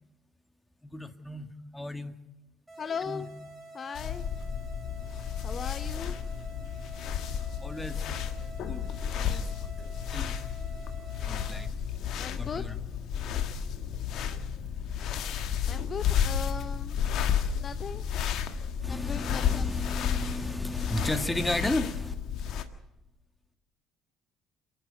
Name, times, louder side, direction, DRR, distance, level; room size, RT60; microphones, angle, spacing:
voice 1, 0.8-2.2 3.0-3.3 7.6-8.1 8.7-9.7 10.1-10.4 11.2-11.7 12.4-13.0 18.8-22.2, left 1 dB, 10° left, 9 dB, 1.8 m, -34 dB
sound 1, 2.7-11.7, right 1 dB, 10° right, 6.4 m, -48 dB
voice 2, 2.8-3.3 3.7-4.3 5.4-6.2 12.2-12.6 15.7-17.0 17.6-18.0 18.9-19.7, left 6 dB, 40° left, 11 dB, 0.8 m, -37 dB
sound 2, 4.0-22.6, left 8 dB, 60° left, 1.6 m, -32 dB
28.5 x 11.5 x 7.8 m, 0.99 s
hypercardioid pair, 55°, 0 cm